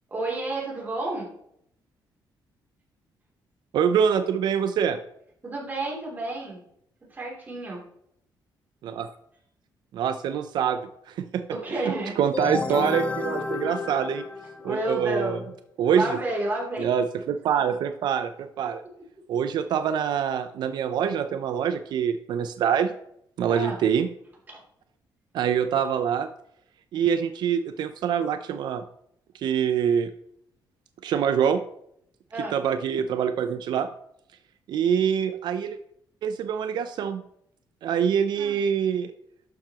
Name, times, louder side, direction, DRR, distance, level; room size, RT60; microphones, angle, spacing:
voice 1, 0.1-1.3 5.4-6.6 7.0-7.8 11.5-12.1 14.6-15.4 15.9-16.9 23.5-23.8 24.5-24.6 32.3-32.6 38.3-38.6, right 2 dB, 25° right, -3 dB, 2.9 m, -31 dB
voice 2, 3.7-5.0 8.8-9.1 9.9-10.8 11.1-11.4 11.7-14.3 14.6-15.4 15.8-16.0 16.8-18.8 19.3-22.9 23.4-24.1 25.3-26.3 26.9-28.8 29.3-30.1 31.0-31.6 32.5-33.9 34.7-35.8 36.2-37.2 37.8-39.1, right 8 dB, 65° right, 9 dB, 0.5 m, -25 dB
sound 1, 12.3-15.0, left 4 dB, 15° left, 0.5 m, -31 dB
11.5 x 6.8 x 2.9 m, 0.73 s
cardioid pair, 155°, 8 cm